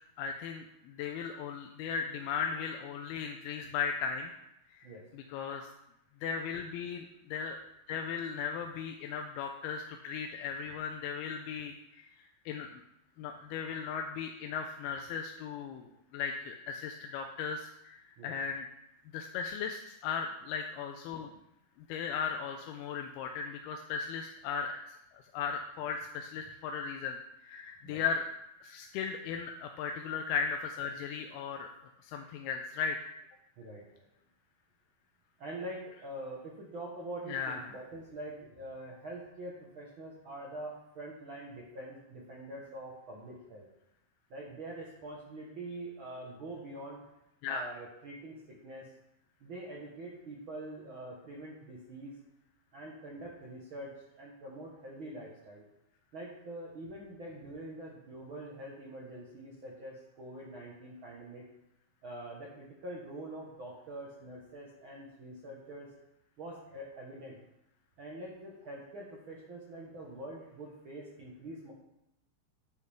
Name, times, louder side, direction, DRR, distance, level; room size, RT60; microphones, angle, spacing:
voice 1, 0.2-4.3 4.7-4.9 5.1-5.7 6.2-7.6 7.9-12.8 13.2-18.7 19.1-21.3 21.9-24.8 25.1-28.3 28.6-31.7 32.0-33.1 37.3-37.6 47.4-47.6, left 6 dB, 85° left, 4 dB, 2.5 m, -37 dB
voice 2, 33.6-34.1 35.4-43.7 44.3-47.0 47.5-48.9 49.4-52.1 52.7-55.6 56.1-61.5 62.0-65.9 66.4-67.4 68.0-71.7, right 1 dB, 85° right, -3 dB, 1.1 m, -45 dB
10.0 x 8.0 x 3.5 m, 0.83 s
omnidirectional pair, 4.5 m